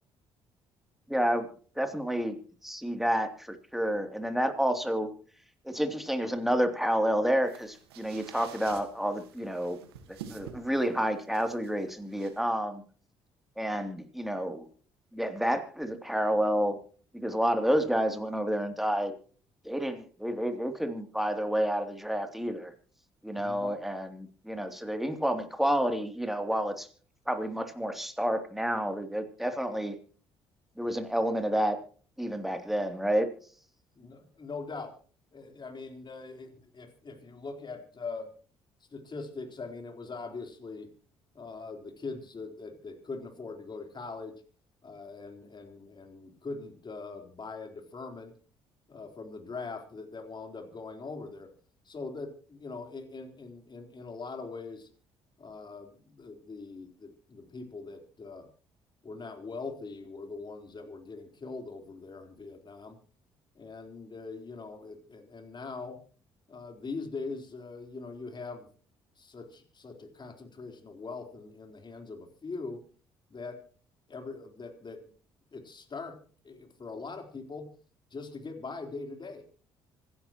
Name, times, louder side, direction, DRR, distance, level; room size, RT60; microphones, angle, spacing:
voice 1, 1.1-1.5 1.8-2.4 2.6-5.1 5.6-9.8 10.1-12.8 13.6-14.6 15.1-16.8 17.1-19.1 19.6-22.7 23.2-26.9 27.3-30.0 30.8-31.8 32.2-33.3, equal, ahead, 6 dB, 2.9 m, -29 dB
sound 1, 7.4-12.4, right 8 dB, 90° right, 1.6 m, -49 dB
voice 2, 23.3-23.8 33.9-35.0 35.3-38.3 38.9-40.9 41.3-44.4 44.8-48.3 48.9-51.5 51.9-54.9 55.4-58.5 59.0-63.0 63.6-66.0 66.5-68.7 69.2-72.8 73.3-73.6 74.1-75.1 75.5-76.2 76.4-77.7 78.1-79.5, left 4 dB, 35° left, 4 dB, 3.9 m, -42 dB
26.0 x 12.0 x 3.0 m, 0.42 s
hypercardioid pair, 55°, 13 cm